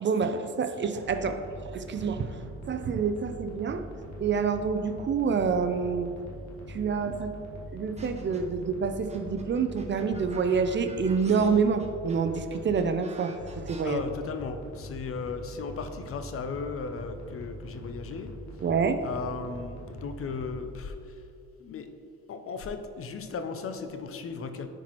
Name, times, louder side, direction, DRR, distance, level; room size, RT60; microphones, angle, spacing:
voice 1, 0.0-1.4 1.7-3.9 4.2-6.1 6.7-7.3 7.7-14.0 18.6-19.0, right 5 dB, 40° right, 8 dB, 0.4 m, -27 dB
sound 1, 1.0-12.8 13.3-20.6, equal, 65° left, 1.4 m, -43 dB
sound 2, 8.0-8.6 9.1-13.8, right 3 dB, 20° right, 0.9 m, -49 dB
voice 2, 13.8-18.6 19.0-21.3 21.6-21.9 22.3-24.7, left 5 dB, 50° left, 8 dB, 0.6 m, -36 dB
9.8 x 4.5 x 3.0 m, 2.5 s
cardioid pair, 90°, 30 cm